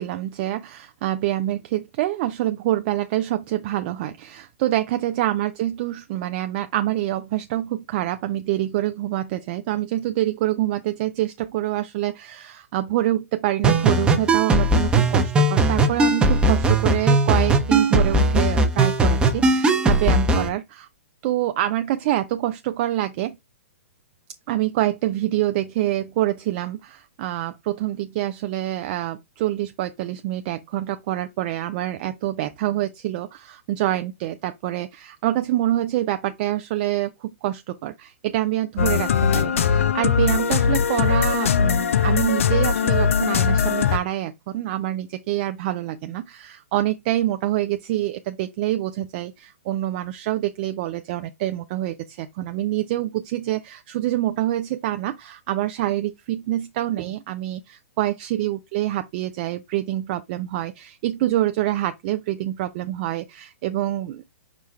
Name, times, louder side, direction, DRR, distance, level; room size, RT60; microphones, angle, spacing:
voice 1, 0.0-20.9 21.2-23.4 24.5-64.3, right 14 dB, 40° right, 0.4 m, -26 dB
sound 1, 13.6-20.5, right 2 dB, 15° right, 0.8 m, -19 dB
sound 2, 38.8-44.0, left 6 dB, 70° left, 0.4 m, -20 dB
5.0 x 2.3 x 4.2 m
hypercardioid pair, 125°, 8 cm